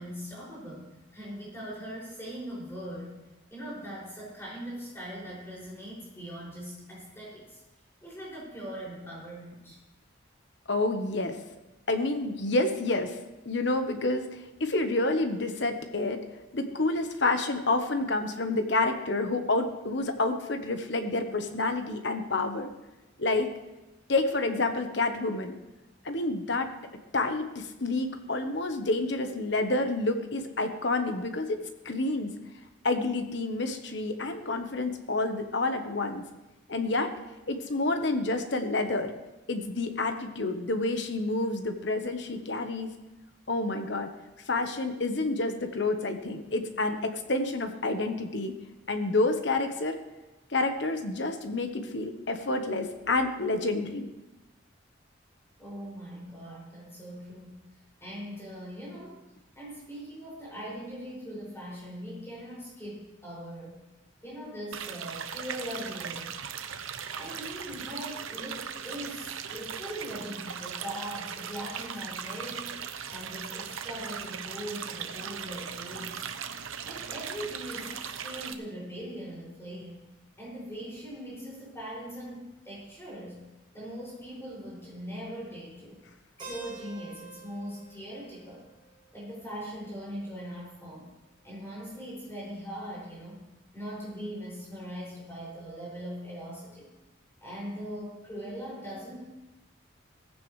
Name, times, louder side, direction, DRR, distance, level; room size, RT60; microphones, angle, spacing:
voice 1, 0.0-3.1 3.5-7.6 8.0-9.8 55.6-57.6 58.0-59.2 59.5-63.8 64.2-66.3 67.1-76.3 76.8-80.0 80.4-83.4 83.7-86.0 86.4-88.7 89.1-91.1 91.4-93.4 93.7-96.9 97.4-99.2, equal, 15° left, -6 dB, 6.3 m, -41 dB
voice 2, 10.7-11.4 11.9-13.2 13.4-14.3 14.6-16.2 16.5-22.7 23.2-23.5 24.1-25.5 26.0-26.7 27.1-31.6 31.8-32.3 32.8-36.2 36.7-37.1 37.5-39.1 39.5-42.9 43.5-44.1 44.5-48.5 48.9-50.0 50.5-54.1, left 2 dB, 60° left, 6 dB, 1.2 m, -29 dB
sound 1, 64.7-78.5, right 7 dB, 90° right, 0.8 m, -38 dB
Keyboard (musical), 86.4-90.3, right 3 dB, 25° right, 6.3 m, -49 dB
17.0 x 15.0 x 3.3 m, 1.0 s
head